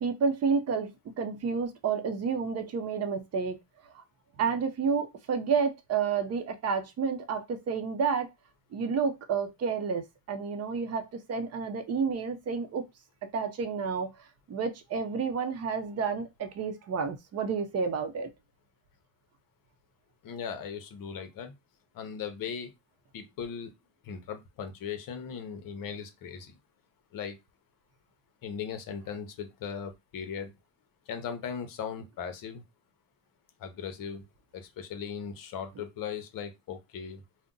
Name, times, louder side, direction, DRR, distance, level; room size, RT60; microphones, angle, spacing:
voice 1, 0.0-3.6 3.9-4.0 4.4-8.3 8.7-12.8 13.2-14.1 14.5-18.3, right 5 dB, 35° right, 0.7 m, -30 dB
voice 2, 20.2-21.5 21.9-22.7 23.1-23.7 24.0-26.6 27.1-27.4 28.4-30.5 31.1-32.6 33.6-34.3 34.5-37.2, left 7 dB, 50° left, 0.8 m, -38 dB
2.5 x 2.1 x 3.7 m
cardioid pair, 115°, 43 cm